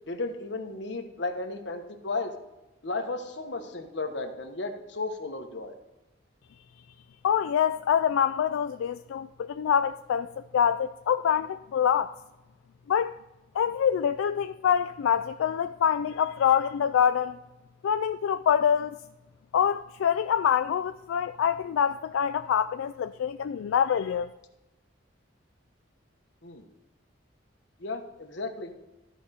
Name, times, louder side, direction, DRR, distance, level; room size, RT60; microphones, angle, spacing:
voice 1, 0.1-2.3 2.8-5.7 26.4-26.6 27.8-28.7, left 3 dB, 60° left, 1.1 m, -34 dB
voice 2, 7.2-12.1 12.9-13.1 13.5-17.4 17.8-19.0 19.5-24.3, left 8 dB, 85° left, 0.3 m, -25 dB
14.0 x 5.1 x 4.2 m
head